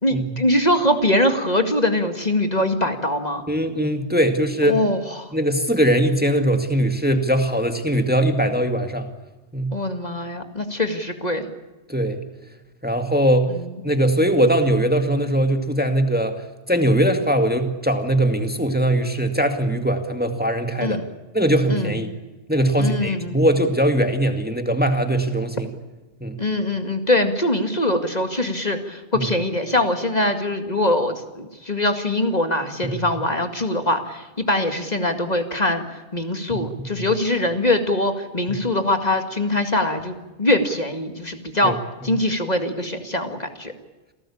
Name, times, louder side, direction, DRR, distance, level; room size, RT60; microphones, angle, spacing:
voice 1, 0.0-3.4 4.6-5.3 9.7-11.5 13.5-13.8 20.8-21.0 21.7-22.0 22.8-23.4 26.4-41.8 42.0-43.7, left 1 dB, 35° left, 6 dB, 2.2 m, -23 dB
voice 2, 3.5-4.8 5.3-9.1 9.5-9.8 11.9-12.2 12.8-13.5 13.8-16.4 16.7-21.0 21.3-22.1 22.5-25.7 26.2-26.4 29.1-29.3 32.8-33.0 36.6-37.0 41.6-41.8, right 1 dB, 10° right, 6 dB, 2.2 m, -21 dB
28.0 x 18.5 x 8.7 m, 1.1 s
omnidirectional pair, 1.2 m